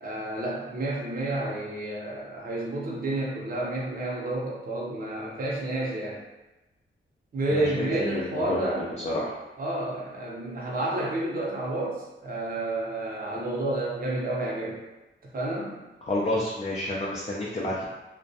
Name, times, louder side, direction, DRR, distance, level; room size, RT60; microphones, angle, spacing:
voice 1, 0.0-6.2 7.3-8.9 9.6-14.8 15.3-15.7, right 1 dB, 45° right, -5 dB, 0.7 m, -30 dB
voice 2, 7.5-9.3 16.1-17.8, left 1 dB, 30° left, -5 dB, 0.4 m, -30 dB
2.2 x 2.1 x 2.6 m, 1.0 s
wide cardioid pair, 100°, 21 cm